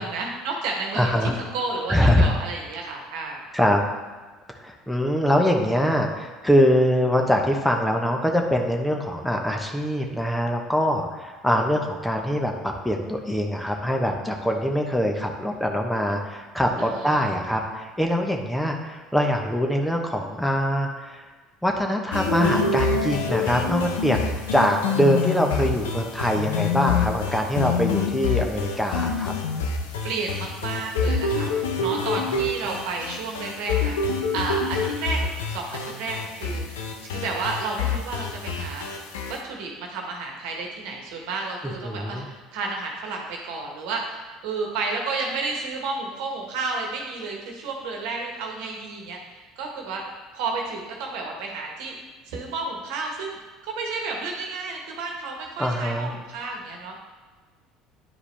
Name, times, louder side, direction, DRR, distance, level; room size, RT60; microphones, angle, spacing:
voice 1, 0.0-3.4 16.8-17.3 25.6-25.7 30.0-36.8 37.1-50.0 50.3-52.0 52.3-53.4 53.6-57.0, right 3 dB, 65° right, 1 dB, 1.3 m, -32 dB
voice 2, 0.9-1.3 1.9-2.3 3.5-3.8 4.5-21.2 21.6-29.3 31.8-31.9 41.8-42.3 55.6-56.1, equal, 5° left, 2 dB, 1.0 m, -23 dB
sound 1, 22.1-39.4, left 4 dB, 75° left, 0.7 m, -26 dB
10.0 x 4.8 x 3.4 m, 1.3 s
hypercardioid pair, 65°, 0 cm